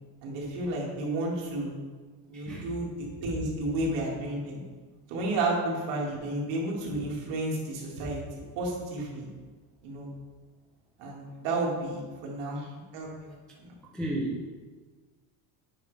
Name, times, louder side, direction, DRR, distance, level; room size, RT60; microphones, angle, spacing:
voice 1, 0.2-1.7 2.3-4.6 5.1-8.2 8.6-9.3 9.8-10.1 11.0-13.8, right 2 dB, 75° right, -3 dB, 2.1 m, -32 dB
voice 2, 2.3-2.7 13.9-14.5, right 1 dB, ahead, -3 dB, 0.3 m, -33 dB
8.9 x 5.1 x 3.3 m, 1.4 s
cardioid pair, 175°, 50 cm